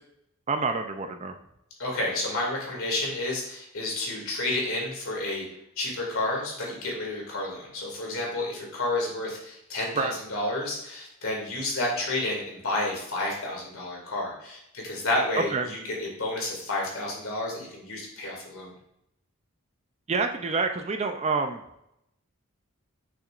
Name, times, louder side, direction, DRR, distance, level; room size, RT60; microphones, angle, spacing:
voice 1, 0.5-1.3 10.0-10.1 15.5-15.7 20.1-21.6, right 4 dB, 30° right, 6 dB, 0.4 m, -27 dB
voice 2, 1.8-5.4 5.8-18.7, left 2 dB, 70° left, -2 dB, 2.3 m, -30 dB
6.6 x 5.9 x 2.5 m, 0.80 s
head